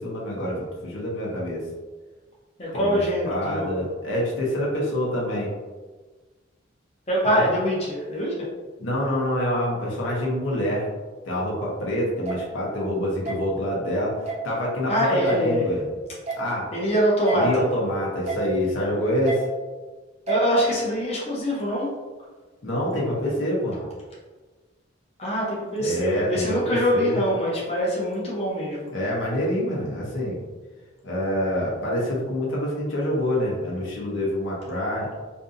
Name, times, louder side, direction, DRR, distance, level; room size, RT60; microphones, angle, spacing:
voice 1, 0.0-1.6 2.7-3.0 3.2-5.5 7.2-7.5 8.8-10.8 11.2-15.8 16.4-16.7 17.3-19.4 22.6-23.9 25.8-27.2 28.9-30.4 31.0-35.1, equal, 80° left, -4 dB, 0.8 m, -26 dB
voice 2, 2.6-3.8 7.1-8.5 14.9-15.8 16.7-17.7 20.3-21.9 25.2-28.9, equal, 30° left, -6 dB, 0.6 m, -24 dB
sound 1, 12.3-12.4 13.3-13.4 14.3-14.4 15.3-15.4 16.3-16.4 17.3-17.4 18.3-18.4 19.3-19.4 20.3-20.4, right 4 dB, 35° right, 0.5 m, -30 dB
2.6 x 2.6 x 2.4 m, 1.3 s
head